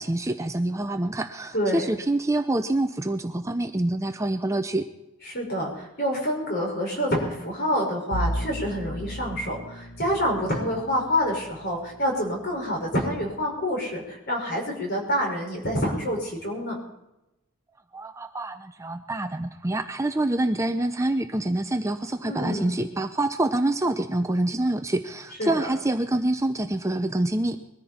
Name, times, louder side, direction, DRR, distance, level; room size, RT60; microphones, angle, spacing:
voice 1, 0.0-4.9 17.9-27.6, right 1 dB, 15° right, 8 dB, 0.6 m, -26 dB
voice 2, 5.3-16.8 22.2-22.9 25.4-25.7, equal, 50° left, 0 dB, 5.5 m, -27 dB
Bowed string instrument, 8.1-13.2, equal, 65° left, 1.9 m, -35 dB
22.0 x 14.0 x 4.4 m, 0.92 s
head